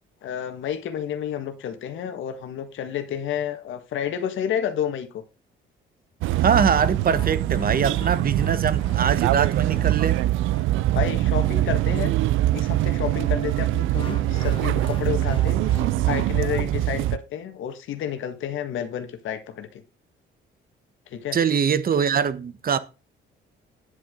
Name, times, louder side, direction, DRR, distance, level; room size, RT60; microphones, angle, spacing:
voice 1, 0.2-5.2 10.9-12.1 12.5-15.6 16.1-19.8 21.1-21.4, left 9 dB, 75° left, 1.6 m, -30 dB
sound 1, 6.2-17.2, right 15 dB, 85° right, 0.5 m, -23 dB
voice 2, 6.4-10.2 21.3-22.8, right 7 dB, 50° right, 1.1 m, -23 dB
sound 2, 6.7-13.2 13.9-16.2, left 4 dB, 25° left, 1.8 m, -41 dB
9.7 x 8.1 x 3.7 m
cardioid pair, 90°, 20 cm